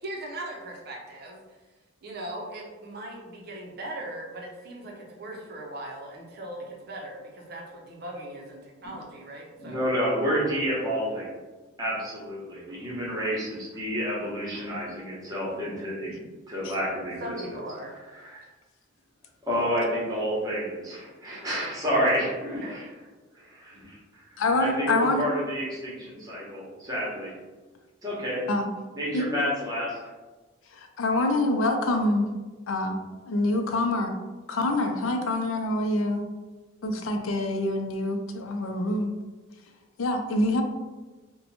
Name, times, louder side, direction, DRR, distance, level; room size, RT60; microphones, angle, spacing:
voice 1, 0.0-1.4 2.0-9.8 17.2-18.0 22.6-22.8, right 1 dB, 50° right, -1 dB, 0.6 m, -39 dB
voice 2, 9.6-11.3 11.8-16.1 16.5-17.6 18.1-18.4 19.4-22.9 23.3-24.2 24.6-27.4 28.0-28.4 28.9-30.0, equal, 20° right, -5 dB, 0.9 m, -29 dB
voice 3, 24.4-25.2 28.5-28.7 29.1-29.2 30.7-32.3 32.7-33.0 33.3-34.1 34.5-36.2 36.8-39.1 40.0-40.6, left 2 dB, 75° left, 5 dB, 0.4 m, -26 dB
2.8 x 2.2 x 4.0 m, 1.2 s
head